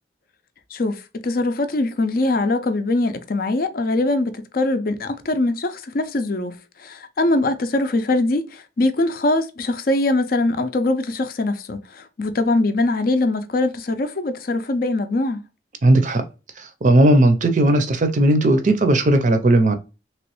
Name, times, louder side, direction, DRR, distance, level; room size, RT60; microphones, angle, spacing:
voice 1, 0.7-15.4, left 2 dB, 50° left, 0.4 m, -22 dB
voice 2, 15.8-16.2 16.6-19.7, right 1 dB, 40° right, 0.5 m, -16 dB
3.0 x 3.0 x 3.0 m
head